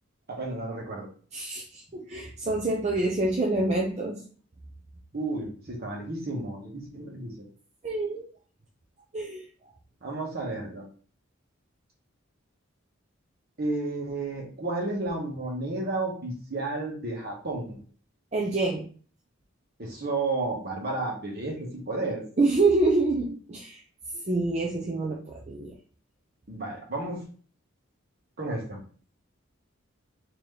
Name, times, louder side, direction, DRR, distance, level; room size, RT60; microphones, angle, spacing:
voice 1, 0.3-1.1 5.1-7.4 10.0-10.8 13.6-17.8 19.8-22.2 26.5-27.2 28.4-28.8, right 2 dB, 50° right, -1 dB, 1.3 m, -32 dB
voice 2, 1.3-4.2 7.8-8.3 9.1-9.4 18.3-18.8 22.4-23.8 24.1-25.7, right 2 dB, 35° right, -1 dB, 0.6 m, -26 dB
3.9 x 2.9 x 3.3 m, 0.43 s
head